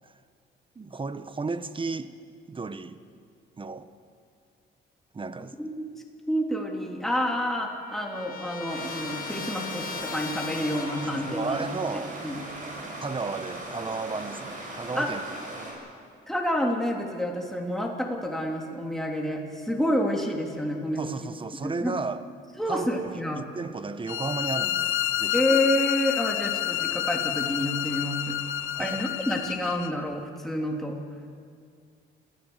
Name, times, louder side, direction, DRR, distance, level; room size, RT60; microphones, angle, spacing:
voice 1, 0.7-2.1 2.5-3.0 3.6-3.9 5.1-5.5 10.9-12.2 13.0-15.2 21.0-22.2 22.7-23.1 23.4-25.4 28.7-29.0, right 4 dB, 25° right, 12 dB, 1.1 m, -33 dB
voice 2, 6.3-11.7 11.9-12.4 14.9-15.1 16.3-21.0 21.6-21.9 22.6-23.4 25.3-28.4 28.8-31.0, left 1 dB, ahead, 0 dB, 3.2 m, -29 dB
Trumpet, 6.7-6.8 7.1-11.5, left 6 dB, 45° left, 1.6 m, -39 dB
Stream, 8.7-15.7, right 1 dB, 40° right, 7.3 m, -39 dB
sound 1, 24.1-29.9, left 12 dB, 85° left, 0.8 m, -29 dB
27.0 x 14.5 x 8.1 m, 2.2 s
cardioid pair, 90°, 20 cm